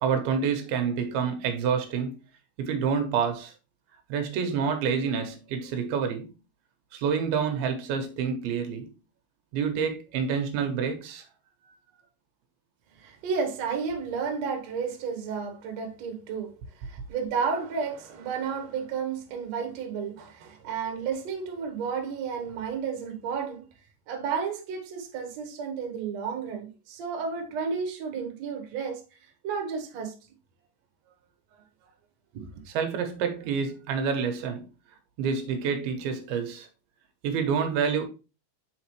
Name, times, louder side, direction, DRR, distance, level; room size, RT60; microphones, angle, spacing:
voice 1, 0.0-2.1 2.6-3.5 4.1-6.3 6.9-8.9 9.5-11.3 32.7-34.7 35.2-36.7 37.2-38.0, right 6 dB, 90° right, 2.9 m, -28 dB
voice 2, 13.0-23.6 24.1-29.0 29.4-30.2 32.3-32.5, right 6 dB, 60° right, 1.9 m, -32 dB
7.8 x 4.2 x 3.1 m
omnidirectional pair, 4.3 m